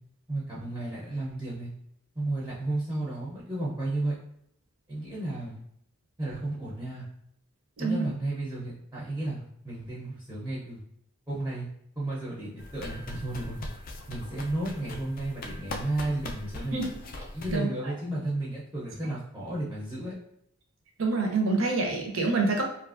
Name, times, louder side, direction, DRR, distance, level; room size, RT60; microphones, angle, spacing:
voice 1, 0.3-1.7 2.2-4.2 4.9-5.6 6.2-7.0 7.8-10.8 11.3-11.7 12.0-13.7 14.1-16.8 17.3-20.1, right 2 dB, 10° right, -7 dB, 0.5 m, -33 dB
sound 1, 12.6-17.6, left 2 dB, 45° left, 0.3 m, -40 dB
voice 2, 17.5-17.9 21.0-22.6, right 3 dB, 70° right, 1 dB, 0.6 m, -27 dB
2.6 x 2.4 x 2.4 m, 0.73 s
head